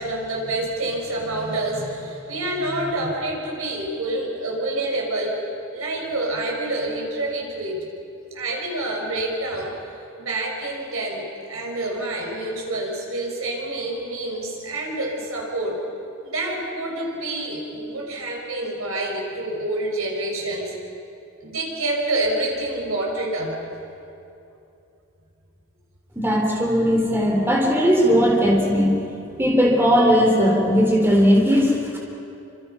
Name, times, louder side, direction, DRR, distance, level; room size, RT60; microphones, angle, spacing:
voice 1, 0.0-5.4 5.7-7.9 8.3-9.7 10.2-15.8 16.2-20.7 21.4-23.6, right 2 dB, 90° right, -1 dB, 5.8 m, -27 dB
voice 2, 26.2-28.9 29.4-32.0, equal, 10° right, -1 dB, 3.7 m, -18 dB
29.0 x 26.0 x 5.8 m, 2.7 s
head